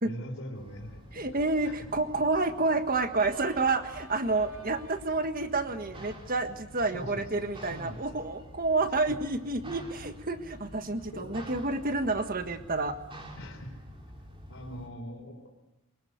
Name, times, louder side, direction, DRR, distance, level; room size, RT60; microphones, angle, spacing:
voice 1, 0.0-1.9 6.8-8.3 11.1-11.4 13.4-13.7 14.5-15.6, equal, 70° left, 0 dB, 4.2 m, -43 dB
sound 1, 0.5-14.9, equal, 25° right, 3.4 m, -48 dB
voice 2, 1.1-13.0, right 3 dB, 40° right, 8 dB, 1.6 m, -29 dB
Organ, 3.1-8.0, right 1 dB, 90° right, 6.9 m, -55 dB
23.5 x 21.0 x 8.1 m, 1.0 s
head